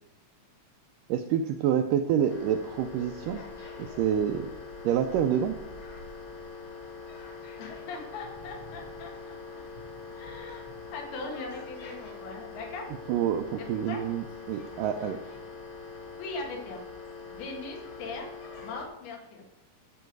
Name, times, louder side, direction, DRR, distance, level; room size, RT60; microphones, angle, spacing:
voice 1, 1.1-3.4 3.8-4.5 4.8-5.6 13.1-15.2, right 9 dB, 80° right, 7 dB, 1.9 m, -27 dB
birmingham-botanical-gardens-mains-hum-from-tannoy, 2.3-18.9, left 4 dB, 45° left, 1.8 m, -43 dB
voice 2, 7.6-9.4 10.1-12.8 13.8-14.0 16.2-16.8 17.3-18.3 18.6-19.4, left 3 dB, 85° left, 1 dB, 3.9 m, -40 dB
12.5 x 7.8 x 4.7 m, 0.88 s
omnidirectional pair, 4.4 m